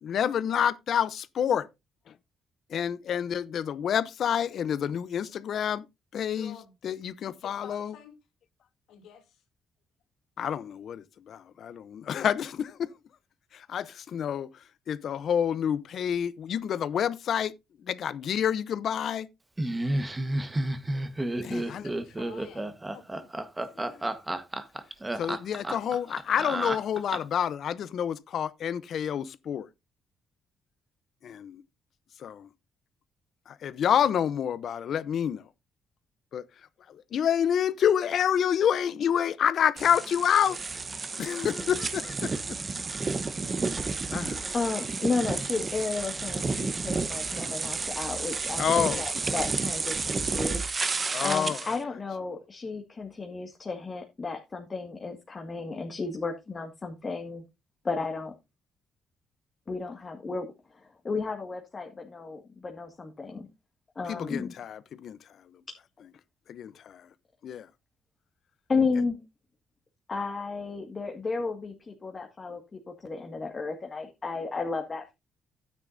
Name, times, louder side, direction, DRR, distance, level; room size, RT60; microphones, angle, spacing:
voice 1, 0.0-1.7 2.1-2.2 2.7-5.9 6.1-6.6 6.8-7.9 10.4-12.9 13.5-17.5 17.8-19.3 21.4-21.8 23.7-24.1 25.2-29.7 31.2-31.6 32.2-32.5 33.5-35.5 36.3-36.4 36.9-40.6 41.2-42.6 43.0-43.3 44.1-44.5 48.6-49.2 51.1-51.8 64.1-65.6 66.5-67.1 67.4-67.7, left 9 dB, 65° left, 0.7 m, -28 dB
voice 2, 6.3-6.9 7.4-8.1 8.9-9.4 21.4-23.3, left 8 dB, 85° left, 2.9 m, -50 dB
Laughter, 19.6-27.4, right 1 dB, 15° right, 1.3 m, -31 dB
sound 1, 39.8-51.8, right 4 dB, 35° right, 1.1 m, -31 dB
voice 3, 44.5-50.6 51.2-57.4 57.8-58.3 59.7-63.5 64.0-64.6 65.7-65.8 68.7-69.2 70.1-75.1, left 4 dB, 35° left, 1.9 m, -33 dB
12.0 x 9.7 x 2.7 m
cardioid pair, 90°, 0 cm